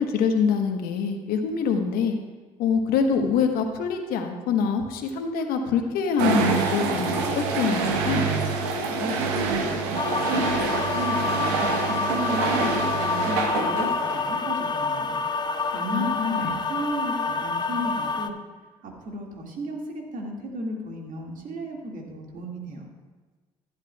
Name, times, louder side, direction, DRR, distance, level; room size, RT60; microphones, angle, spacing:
voice 1, 0.0-2.2 2.6-8.3 15.9-16.5, left 6 dB, 70° left, 5 dB, 1.1 m, -25 dB
sound 1, 6.2-14.4, right 4 dB, 75° right, 1.1 m, -26 dB
voice 2, 8.9-15.2 15.7-18.4 18.8-22.9, right 1 dB, 55° right, 0 dB, 2.0 m, -34 dB
sound 2, 9.9-18.3, left 4 dB, 25° left, 0.6 m, -28 dB
12.0 x 11.5 x 2.3 m, 1.3 s
hypercardioid pair, 55°, 16 cm